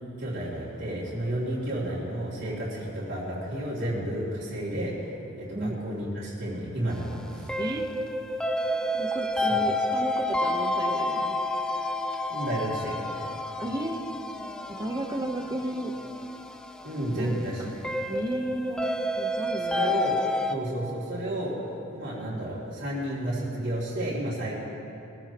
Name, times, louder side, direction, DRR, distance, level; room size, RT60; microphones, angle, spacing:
voice 1, 0.2-5.1 5.4-7.5 9.4-9.6 12.3-13.0 16.8-17.9 19.7-21.5 21.9-24.5, right 1 dB, 60° right, -9 dB, 3.0 m, -32 dB
sound 1, 6.9-20.5, left 1 dB, 5° left, 0.5 m, -30 dB
voice 2, 8.9-11.3 13.6-14.0 14.8-15.9 17.2-17.7 18.1-20.0, right 1 dB, 20° right, 3 dB, 1.0 m, -33 dB
22.5 x 14.5 x 3.0 m, 2.7 s
head